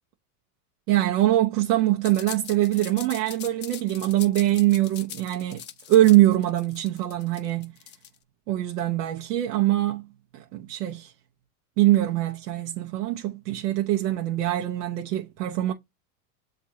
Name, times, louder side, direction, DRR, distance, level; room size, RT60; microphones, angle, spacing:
voice 1, 0.9-5.6 5.9-7.7 8.5-10.1 10.3-11.1 11.8-15.7, right 15 dB, 80° right, 0.8 m, -23 dB
sound 1, 2.0-8.2, left 11 dB, 25° left, 0.4 m, -41 dB
7.3 x 2.6 x 2.8 m
supercardioid pair, 125°, 46 cm